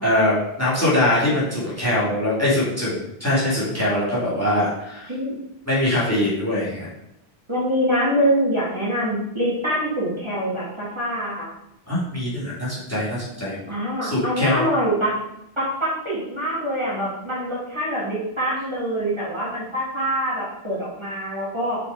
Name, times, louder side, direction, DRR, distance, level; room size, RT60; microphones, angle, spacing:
voice 1, 0.0-5.1 5.7-6.9 11.9-13.6 14.0-14.6, left 1 dB, 15° left, -7 dB, 3.1 m, -22 dB
voice 2, 7.5-11.5 13.7-15.1 15.6-21.8, equal, 25° right, -8 dB, 2.8 m, -24 dB
6.7 x 6.2 x 5.1 m, 0.82 s
omnidirectional pair, 1.1 m